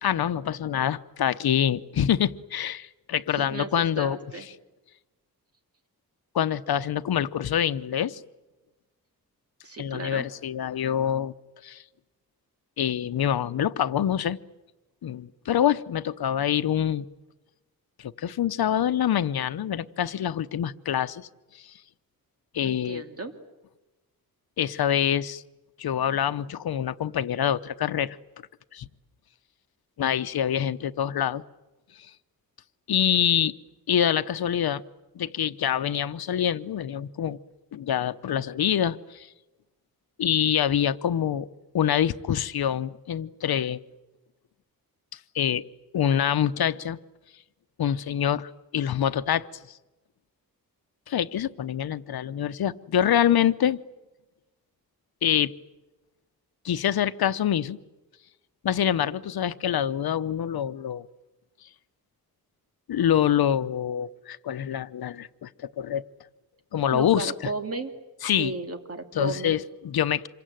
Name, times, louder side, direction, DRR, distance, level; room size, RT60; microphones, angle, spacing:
voice 1, 0.0-4.2 6.3-8.2 9.8-11.3 11.6-11.8 12.8-14.4 15.0-17.1 18.0-21.3 22.5-23.0 24.6-25.4 25.8-28.2 28.7-28.9 30.0-31.4 32.9-33.5 33.9-34.8 35.1-37.4 37.7-39.3 40.2-41.5 41.7-43.8 45.3-45.6 45.9-47.0 47.8-49.5 51.1-53.8 55.2-55.5 56.6-57.8 58.6-61.0 62.9-66.0 66.7-67.3 68.2-68.5 69.1-70.3, left 9 dB, 80° left, 13 dB, 0.9 m, -25 dB
voice 2, 3.3-3.7 4.0-4.5 9.6-10.3 22.6-23.3 66.9-67.9 68.4-69.5, right 3 dB, 40° right, 6 dB, 2.7 m, -34 dB
27.0 x 23.0 x 9.2 m, 1.1 s
wide cardioid pair, 130°, 37 cm